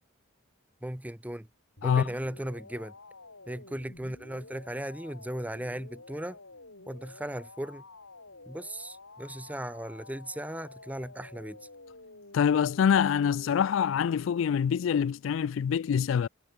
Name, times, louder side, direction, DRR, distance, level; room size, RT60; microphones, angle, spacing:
voice 1, 0.8-1.5 1.8-2.9 3.5-6.4 6.9-7.8 8.5-11.7, right 1 dB, 10° right, 1.1 m, -37 dB
sound 1, 1.8-14.6, left 2 dB, 85° left, 6.7 m, -50 dB
voice 2, 12.3-16.3, left 7 dB, 65° left, 0.3 m, -25 dB
head